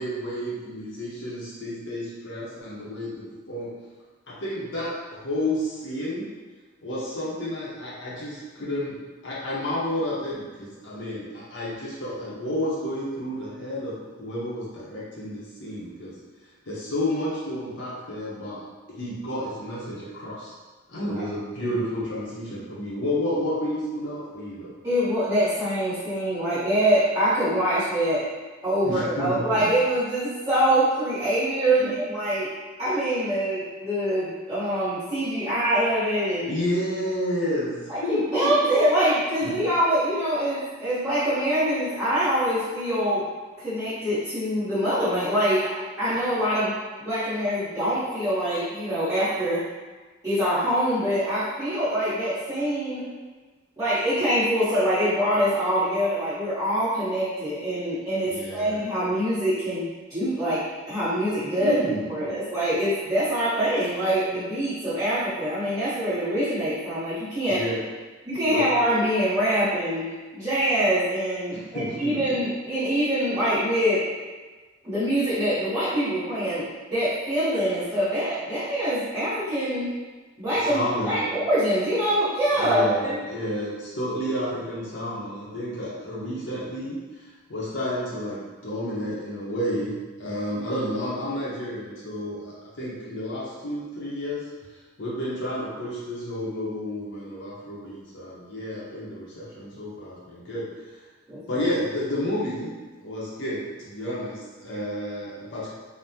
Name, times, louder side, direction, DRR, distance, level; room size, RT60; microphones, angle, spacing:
voice 1, 0.0-3.7 4.3-6.3 6.8-9.0 9.2-16.1 16.7-18.6 18.9-20.5 20.9-24.7 28.8-29.7 31.8-31.9 36.4-37.7 38.0-38.7 39.4-39.5 58.3-58.8 61.6-62.1 67.5-67.8 68.5-68.7 71.5-72.4 80.7-81.3 82.6-87.0 87.5-89.9 90.2-94.4 95.0-100.6 101.5-102.7 103.0-105.7, left 1 dB, 60° left, -7 dB, 0.7 m, -31 dB
voice 2, 21.0-21.3 24.8-28.2 28.6-32.5 32.8-36.5 37.9-43.3 43.6-49.6 50.2-53.1 53.8-61.7 62.1-67.6 68.2-70.1 70.3-74.0 74.8-79.9 80.4-83.2 101.3-101.6, equal, 15° right, -14 dB, 1.0 m, -24 dB
3.4 x 2.1 x 2.7 m, 1.3 s
head